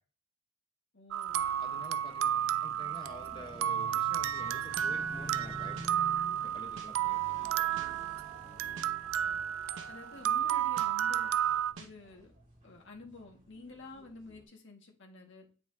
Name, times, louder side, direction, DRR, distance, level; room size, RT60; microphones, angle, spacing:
voice 1, 0.9-1.4 9.2-9.4 9.9-11.3 11.8-12.3 12.6-15.4, left 3 dB, 65° left, 1.8 m, -50 dB
sound 1, 1.1-11.7, right 10 dB, 85° right, 0.3 m, -32 dB
sound 2, 1.3-14.4, right 1 dB, 40° right, 2.4 m, -50 dB
voice 2, 1.6-6.1 6.4-7.4, left 2 dB, 25° left, 1.1 m, -50 dB
sound 3, 4.8-4.9 5.8-5.9 6.8-6.9 7.8-7.9 8.8-8.9 9.8-9.9 10.8-10.9 11.8-11.9, right 4 dB, 70° right, 1.0 m, -47 dB
8.5 x 4.8 x 2.8 m
head